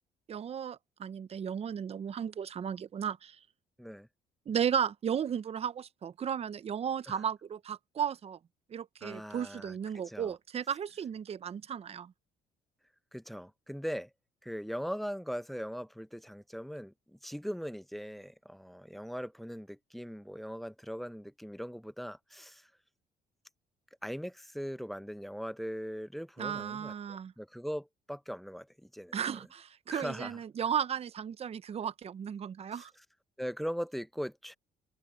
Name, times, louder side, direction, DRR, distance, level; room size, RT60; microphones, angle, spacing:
voice 1, 0.3-3.4 4.5-8.4 8.7-12.1 26.4-27.3 29.1-32.9, right 8 dB, 35° right, 0.7 m, -35 dB
voice 2, 9.0-10.3 13.1-14.1 14.4-22.7 24.0-29.2 29.9-30.4 32.7-32.9 33.4-34.5, equal, ahead, 0.7 m, -40 dB
cardioid pair, 110°, 17 cm